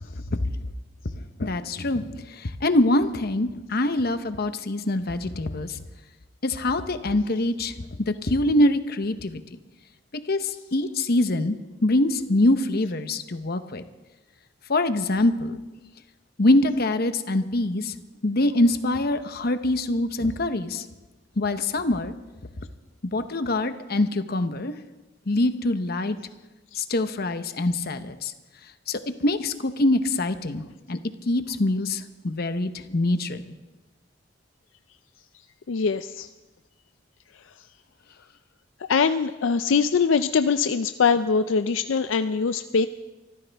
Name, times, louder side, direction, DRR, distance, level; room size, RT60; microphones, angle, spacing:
voice 1, 1.2-5.8 6.4-9.6 10.1-11.6 11.8-13.8 14.7-15.6 16.4-17.9 18.2-20.9 21.4-22.1 23.1-24.7 25.3-26.2 26.7-28.3 28.9-31.0 31.3-33.5, left 1 dB, 50° left, 10 dB, 0.9 m, -24 dB
voice 2, 35.7-36.3 38.9-42.9, left 5 dB, 75° left, 11 dB, 0.4 m, -22 dB
24.5 x 14.0 x 3.5 m, 1.1 s
head